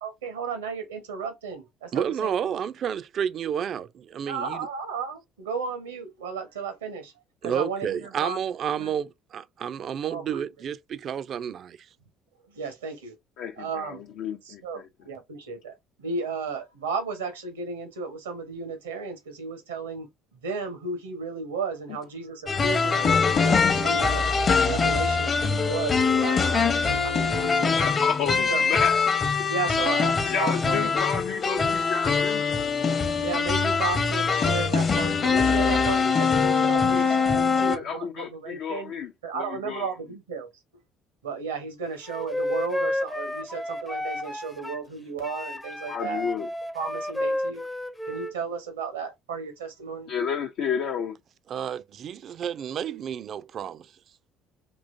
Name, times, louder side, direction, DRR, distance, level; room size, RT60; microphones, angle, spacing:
voice 1, 0.0-1.9 2.2-2.3 4.2-7.1 7.4-8.4 8.8-8.9 10.0-10.4 12.5-13.1 13.6-14.0 14.4-20.1 20.3-24.3 24.7-27.7 28.5-28.6 29.5-30.9 33.2-38.9 39.2-40.5 41.2-46.2 46.7-47.6 48.1-50.1, right 5 dB, 90° right, 1.1 m, -34 dB
voice 2, 1.9-4.6 7.4-11.8 51.5-53.9, right 8 dB, 50° right, 0.4 m, -30 dB
voice 3, 13.4-14.9 27.8-29.1 29.4-29.5 30.3-32.5 36.9-37.1 37.3-39.9 45.9-46.5 50.1-51.2, left 6 dB, 65° left, 0.5 m, -31 dB
sound 1, 22.5-37.8, left 5 dB, 40° left, 0.8 m, -23 dB
Wind instrument woodwind instrument, 42.0-44.8 45.2-48.3, left 1 dB, 10° left, 0.5 m, -31 dB
3.8 x 3.0 x 2.5 m
hypercardioid pair, 65°, 0 cm